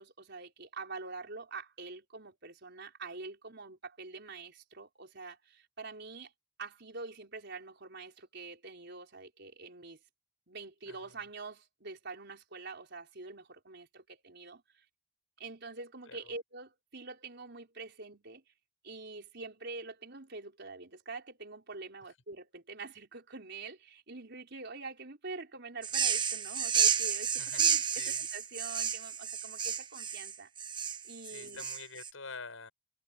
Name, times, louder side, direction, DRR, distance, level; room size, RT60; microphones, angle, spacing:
voice 1, 0.0-6.3 6.6-10.0 10.5-14.8 15.4-18.4 18.8-30.5 31.0-31.7, right 3 dB, 60° right, 4.7 m, -45 dB
voice 2, 10.9-11.2 16.1-16.3 27.3-28.2 31.2-32.7, left 4 dB, 85° left, 7.4 m, -47 dB
sound 1, 25.8-32.1, right 7 dB, 25° right, 0.6 m, -31 dB
head